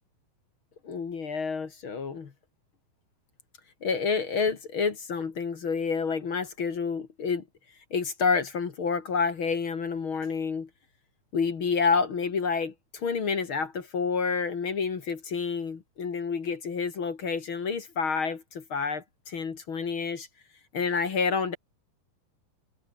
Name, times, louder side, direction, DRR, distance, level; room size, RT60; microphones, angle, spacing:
voice 1, 0.8-2.3 3.8-7.4 7.9-10.7 11.3-20.3 20.7-21.6, left 5 dB, 40° left, 2.3 m, -29 dB
omnidirectional pair, 4.2 m